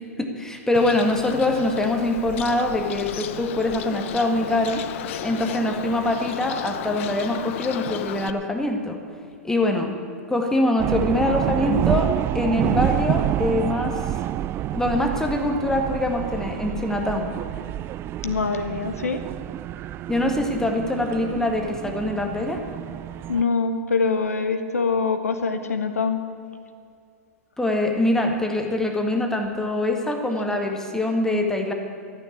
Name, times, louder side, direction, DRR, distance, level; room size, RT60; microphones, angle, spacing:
voice 1, 0.0-4.8 5.2-9.0 9.4-9.9 10.3-14.0 14.7-17.3 20.1-22.6 27.6-31.7, left 1 dB, 5° left, 3 dB, 1.9 m, -24 dB
Bird, 0.7-8.3, left 10 dB, 60° left, 0.8 m, -33 dB
sound 1, 10.8-23.4, right 13 dB, 30° right, 0.3 m, -28 dB
voice 2, 18.2-19.2 23.3-26.2, left 4 dB, 80° left, 9 dB, 1.1 m, -24 dB
14.0 x 9.7 x 8.8 m, 2.4 s
figure-of-eight pair, 100°, 8 cm